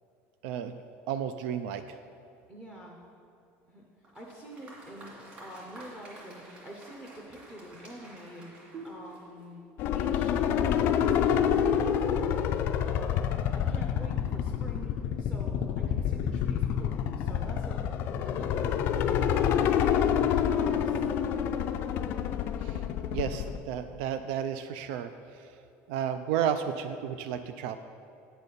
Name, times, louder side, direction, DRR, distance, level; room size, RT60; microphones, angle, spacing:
voice 1, 0.4-0.8 1.1-2.0 22.6-22.8 23.1-25.6 25.9-27.8, right 9 dB, 75° right, 10 dB, 0.3 m, -32 dB
voice 2, 2.5-3.0 3.7-8.5 8.8-9.6 9.9-12.4 12.8-17.9 18.2-18.9 19.2-21.0, right 1 dB, 15° right, -2 dB, 0.6 m, -46 dB
Applause, 4.0-9.6, right 1 dB, 30° right, 2.1 m, -51 dB
sound 1, 8.7-12.1, right 3 dB, 50° right, 1.1 m, -50 dB
sound 2, 9.8-23.6, left 8 dB, 40° left, 0.3 m, -27 dB
9.1 x 4.1 x 6.7 m, 2.6 s
cardioid pair, 175°, 5 cm